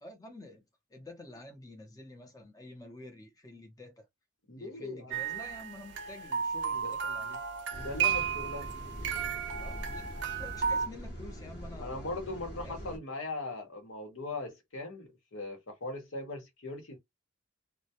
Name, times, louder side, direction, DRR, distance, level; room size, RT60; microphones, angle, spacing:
voice 1, 0.0-0.6 0.9-4.0 4.6-7.5 9.6-12.1 12.6-12.8, left 1 dB, 15° left, 0.6 m, -49 dB
voice 2, 4.5-5.4 6.8-6.9 7.7-8.7 11.8-17.0, left 2 dB, 80° left, 0.8 m, -39 dB
sound 1, 5.1-10.9, right 7 dB, 55° right, 0.4 m, -33 dB
sound 2, 7.7-13.0, equal, 50° left, 0.8 m, -43 dB
2.2 x 2.0 x 2.8 m
head